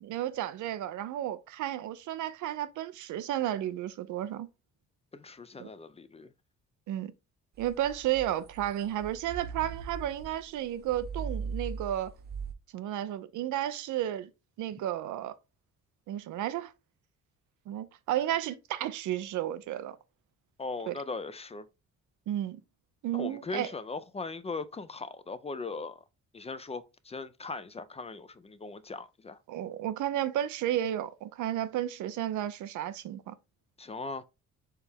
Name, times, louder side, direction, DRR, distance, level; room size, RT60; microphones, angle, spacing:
voice 1, 0.0-4.5 5.6-5.7 6.9-7.1 7.6-12.1 12.7-14.3 14.6-15.3 16.1-16.7 17.7-20.0 20.9-21.0 22.3-22.6 23.0-23.7 29.5-33.3, right 12 dB, 80° right, 0.6 m, -32 dB
voice 2, 5.1-6.3 20.6-21.7 23.1-26.0 26.3-29.4 33.8-34.2, left 3 dB, 20° left, 0.4 m, -39 dB
sound 1, 7.6-12.5, right 5 dB, 35° right, 0.6 m, -40 dB
4.6 x 3.4 x 3.4 m
cardioid pair, 90°, 30 cm